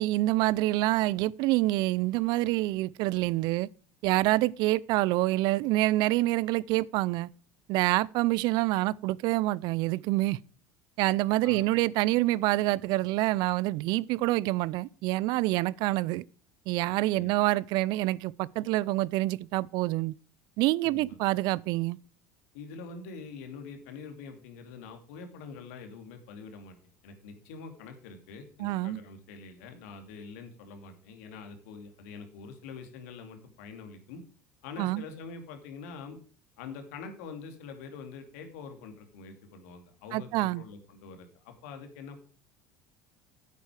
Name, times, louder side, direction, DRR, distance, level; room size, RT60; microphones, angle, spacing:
voice 1, 0.0-3.7 4.0-7.3 7.7-10.4 11.0-16.2 16.7-20.1 20.6-22.0 28.6-29.0 34.8-35.0 40.1-40.6, right 18 dB, 60° right, 0.4 m, -27 dB
voice 2, 11.4-11.7 17.1-17.3 20.8-21.2 22.5-26.8 27.0-34.2 34.6-36.2 36.6-42.2, left 5 dB, 75° left, 2.4 m, -45 dB
10.0 x 8.4 x 4.9 m
hypercardioid pair, 80°, 8 cm